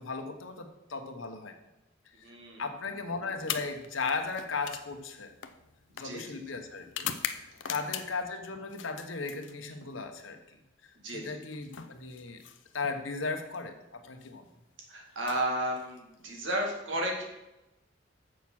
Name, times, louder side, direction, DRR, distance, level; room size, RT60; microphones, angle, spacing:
voice 1, 0.0-1.5 2.2-2.3 2.6-5.3 6.0-10.6 11.1-12.4 12.7-14.5, left 4 dB, 90° left, 5 dB, 1.1 m, -36 dB
voice 2, 2.2-2.6 6.0-6.4 7.6-8.0 11.0-11.4 14.9-17.2, right 1 dB, 70° right, 1 dB, 2.1 m, -33 dB
sound 1, 3.4-8.3 8.7-9.9 11.2-13.0 14.1-14.3 15.1-16.3, left 9 dB, 65° left, 0.6 m, -41 dB
7.2 x 6.6 x 6.1 m, 0.95 s
head